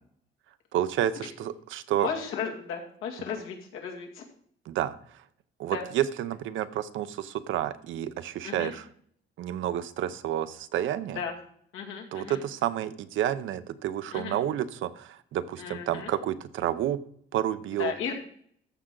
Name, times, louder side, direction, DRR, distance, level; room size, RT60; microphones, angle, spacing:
voice 1, 0.7-2.1 4.7-4.9 5.6-8.9 9.4-11.2 12.1-17.0 17.3-17.9, right 11 dB, 75° right, 13 dB, 0.7 m, -30 dB
voice 2, 2.0-4.2 5.7-5.8 8.4-8.7 11.1-11.3 11.7-12.4 14.1-14.4 15.6-16.1 17.8-18.1, left 7 dB, 90° left, 0 dB, 2.3 m, -35 dB
14.0 x 5.9 x 3.8 m, 0.62 s
cardioid pair, 140°, 20 cm